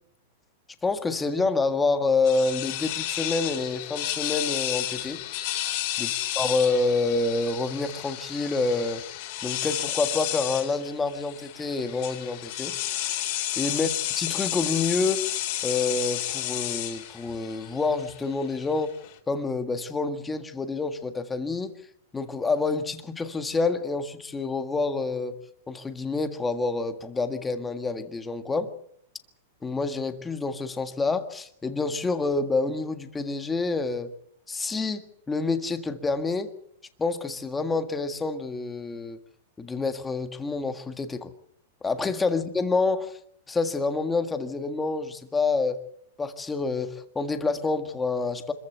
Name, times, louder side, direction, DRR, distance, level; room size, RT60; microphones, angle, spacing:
voice 1, 0.8-5.2 6.0-6.1 6.3-9.0 9.4-13.2 13.6-13.9 14.2-15.3 15.6-18.9 19.3-21.8 22.1-25.4 25.7-28.7 29.6-34.1 34.5-36.5 37.0-39.2 39.6-41.3 41.8-43.2 43.5-45.8 46.2-48.5, left 3 dB, 10° left, 1.7 m, -27 dB
sound 1, 2.2-19.1, left 14 dB, 45° left, 3.4 m, -31 dB
25.5 x 14.5 x 8.2 m
supercardioid pair, 160°, 0 cm